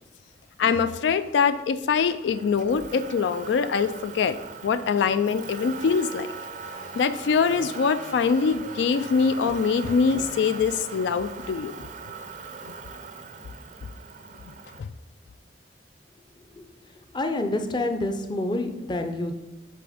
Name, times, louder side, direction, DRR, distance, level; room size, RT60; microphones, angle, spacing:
voice 1, 0.6-4.4 4.6-6.3 6.8-11.7 12.7-12.8 14.8-14.9, left 5 dB, 85° left, 12 dB, 0.3 m, -23 dB
Motor vehicle (road), 2.3-14.8, right 4 dB, 45° right, 0.5 m, -40 dB
voice 2, 17.1-19.4, left 2 dB, 25° left, 6 dB, 0.5 m, -27 dB
7.6 x 3.4 x 5.0 m, 1.0 s
head